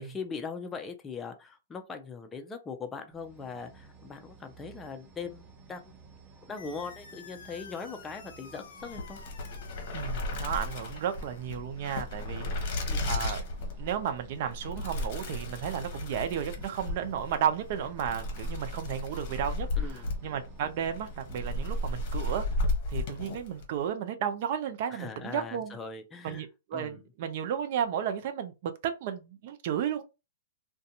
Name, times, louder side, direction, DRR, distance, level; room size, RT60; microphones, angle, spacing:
voice 1, 0.0-5.9 6.5-9.2 12.9-13.1 19.8-20.1 24.9-26.4 26.7-27.1, left 5 dB, 15° left, 0.5 m, -40 dB
sound 1, 3.1-22.6, right 5 dB, 20° right, 1.0 m, -54 dB
sound 2, 6.6-11.6, left 6 dB, 75° left, 0.6 m, -51 dB
sound 3, 8.8-23.7, left 2 dB, 50° left, 0.9 m, -34 dB
voice 2, 9.9-12.8 13.0-13.4 13.8-22.5 22.9-25.8 26.2-30.0, right 8 dB, 50° right, 0.5 m, -33 dB
2.4 x 2.2 x 2.8 m
hypercardioid pair, 135°, 0 cm